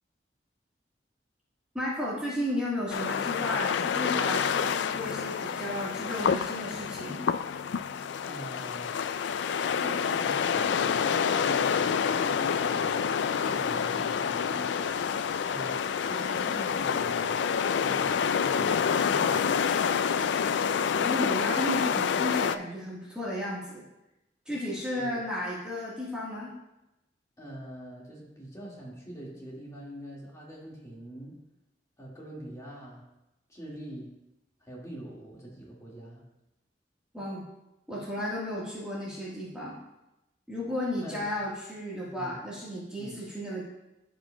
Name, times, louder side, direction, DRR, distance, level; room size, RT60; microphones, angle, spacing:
voice 1, 1.7-7.2 21.0-23.8 24.4-26.5 37.1-37.4 37.9-39.8 40.5-43.6, left 1 dB, 5° right, -7 dB, 1.5 m, -33 dB
sound 1, 2.9-22.6, left 7 dB, 75° left, 0.3 m, -28 dB
voice 2, 8.2-9.0 9.7-13.2 13.4-15.1 15.4-19.8 24.9-25.3 27.4-31.4 32.0-33.1 33.5-34.1 34.6-36.2 41.0-41.4 42.1-42.3 43.0-43.2, right 1 dB, 20° left, -5 dB, 1.9 m, -44 dB
15.0 x 5.2 x 2.3 m, 0.93 s
head